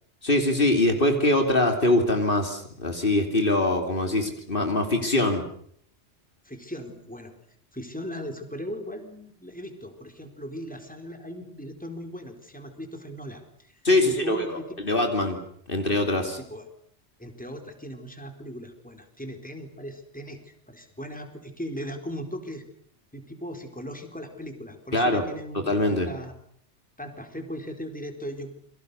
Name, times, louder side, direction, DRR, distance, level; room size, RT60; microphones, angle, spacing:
voice 1, 0.2-5.4 13.8-15.4 15.7-16.4 24.9-25.2 25.7-26.1, left 1 dB, 50° left, 5 dB, 3.1 m, -23 dB
voice 2, 6.4-7.3 7.7-14.6 16.4-16.7 17.2-22.6 23.1-26.3 27.0-28.5, equal, 5° left, 5 dB, 4.0 m, -38 dB
29.0 x 23.5 x 6.8 m, 0.62 s
omnidirectional pair, 1.2 m